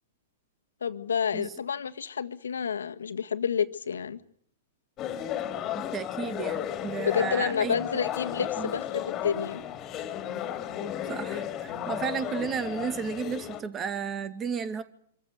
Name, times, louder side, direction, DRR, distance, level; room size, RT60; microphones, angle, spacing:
voice 1, 0.8-4.2 7.0-9.6, left 7 dB, 75° left, 8 dB, 1.7 m, -29 dB
sound 1, 5.0-13.6, left 10 dB, 30° left, 2.7 m, -34 dB
voice 2, 5.9-7.8 8.4-8.7 11.1-14.8, right 6 dB, 25° right, 11 dB, 2.3 m, -33 dB
25.5 x 14.5 x 9.2 m, 0.63 s
hypercardioid pair, 110°, 0 cm